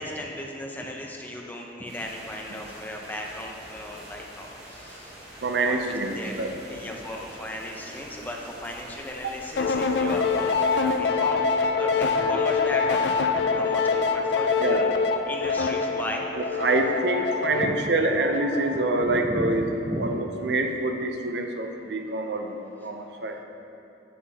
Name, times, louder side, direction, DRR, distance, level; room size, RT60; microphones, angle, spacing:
voice 1, 0.0-5.2 5.6-6.4 6.7-11.5 11.8-14.9 15.3-16.6 17.6-17.7 19.0-19.5 19.9-20.1, left 1 dB, 10° left, 0 dB, 0.5 m, -36 dB
sound 1, 1.8-10.9, right 1 dB, 30° right, 1.7 m, -45 dB
voice 2, 5.4-6.5 9.2-9.3 14.6-14.9 16.4-19.7 20.0-22.5 22.8-23.4, right 2 dB, 65° right, 4 dB, 0.5 m, -26 dB
sound 2, 9.6-19.0, left 4 dB, 65° left, 0.4 m, -25 dB
8.4 x 7.5 x 2.8 m, 2.7 s
head